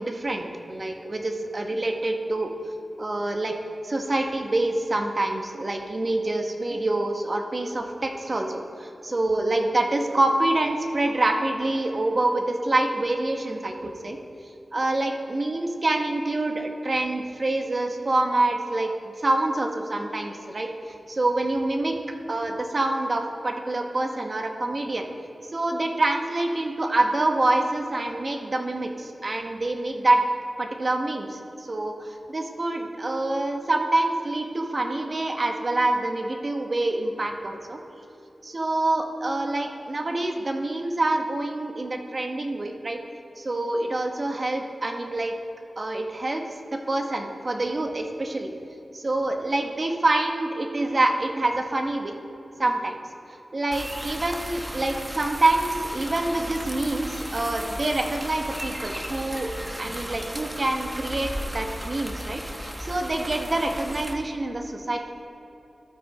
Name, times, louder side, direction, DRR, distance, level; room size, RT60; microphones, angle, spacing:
voice 1, 0.0-2.5 3.0-3.5 3.8-14.2 14.7-18.9 19.2-20.7 21.1-21.9 22.3-25.0 25.5-30.2 30.6-37.8 38.4-43.0 43.4-45.3 45.8-46.4 46.9-48.5 48.9-52.1 52.6-52.9 53.5-59.5 59.8-62.4 62.8-65.0, right 2 dB, 45° right, 3 dB, 1.0 m, -26 dB
sound 1, 53.7-64.1, equal, 10° right, 1.0 m, -35 dB
13.0 x 6.1 x 4.2 m, 3.0 s
wide cardioid pair, 70°, 0 cm